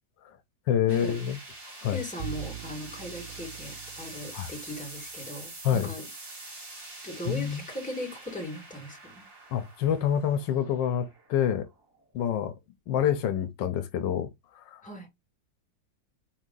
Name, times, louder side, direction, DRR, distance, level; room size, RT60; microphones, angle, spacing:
voice 1, 0.7-1.4 1.8-2.0 4.3-4.5 5.6-5.9 7.3-7.6 9.5-11.7 12.1-12.5 12.9-14.3 14.6-14.8, left 9 dB, 80° left, 1.3 m, -27 dB
sound 1, 0.9-12.0, right 2 dB, 45° right, 2.2 m, -45 dB
voice 2, 1.9-6.1 7.0-9.2 14.8-15.1, left 1 dB, 5° left, 1.6 m, -38 dB
Bowed string instrument, 2.2-5.3, right 16 dB, 85° right, 1.3 m, -42 dB
4.8 x 2.7 x 3.8 m
omnidirectional pair, 2.0 m